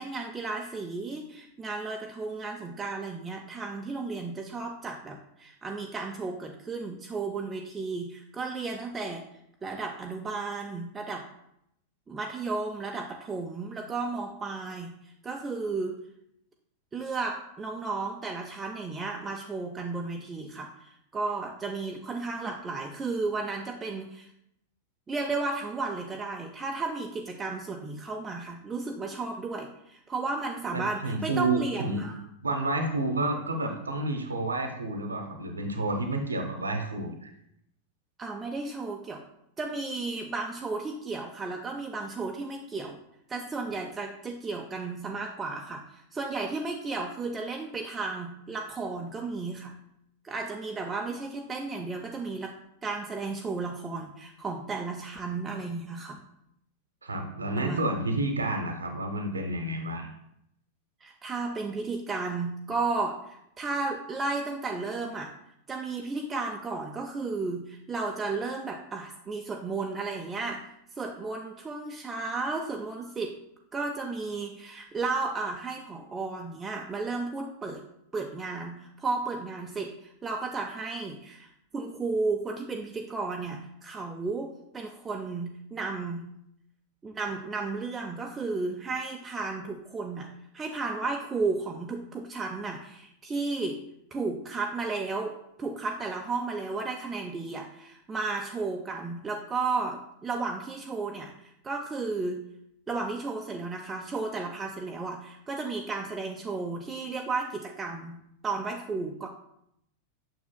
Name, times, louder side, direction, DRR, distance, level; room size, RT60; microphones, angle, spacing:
voice 1, 0.0-9.3 9.6-11.3 12.1-16.0 16.9-24.3 25.1-32.2 33.7-33.8 38.2-39.2 39.6-43.0 43.3-49.7 50.2-52.5 52.8-56.2 57.6-57.8 61.0-65.3 65.7-73.4 73.7-77.8 78.1-86.3 87.0-90.3 90.5-93.8 94.1-102.4 102.9-109.3, right 3 dB, 15° right, 2 dB, 0.5 m, -33 dB
voice 2, 30.7-32.0 32.4-37.3 57.0-60.1, right 2 dB, 75° right, 5 dB, 0.9 m, -30 dB
9.2 x 6.4 x 2.2 m, 0.77 s
figure-of-eight pair, 90°, 0 cm